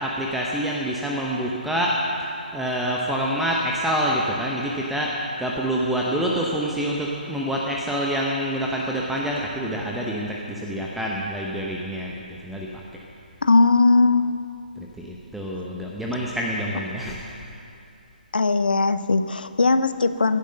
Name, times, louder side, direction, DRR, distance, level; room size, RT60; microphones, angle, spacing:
voice 1, 0.0-1.9 2.5-5.1 5.4-12.7 14.8-17.2, equal, ahead, -3 dB, 0.9 m, -26 dB
voice 2, 13.4-14.3 18.3-20.4, left 3 dB, 70° left, 12 dB, 0.7 m, -19 dB
15.5 x 10.5 x 6.6 m, 2.6 s
figure-of-eight pair, 140°, 5 cm